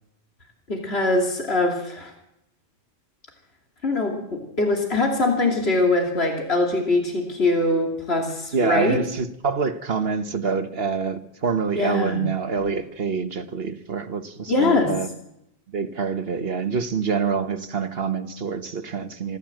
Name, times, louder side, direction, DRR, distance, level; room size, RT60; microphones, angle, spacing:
voice 1, 0.7-2.1 3.8-9.0 11.7-12.2 14.5-14.9, left 2 dB, 70° left, 1 dB, 3.1 m, -22 dB
voice 2, 8.5-15.1 15.7-19.4, right 5 dB, 65° right, 8 dB, 1.5 m, -26 dB
25.5 x 14.5 x 7.7 m, 0.83 s
omnidirectional pair, 1.1 m